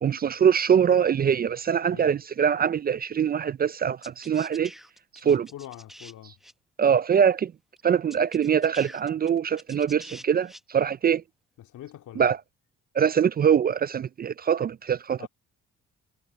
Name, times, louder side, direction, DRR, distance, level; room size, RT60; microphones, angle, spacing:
voice 1, 0.0-4.7 5.2-5.5 6.8-7.5 7.8-11.2 12.2-12.4 12.9-15.2, right 8 dB, 30° right, 0.4 m, -23 dB
sound 1, 4.0-6.1 6.4-6.5 7.8-7.9 8.1-10.6, equal, ahead, 0.8 m, -46 dB
voice 2, 5.2-6.4 11.6-12.3 15.2-15.3, left 12 dB, 80° left, 2.8 m, -44 dB
cardioid pair, 90°, 30 cm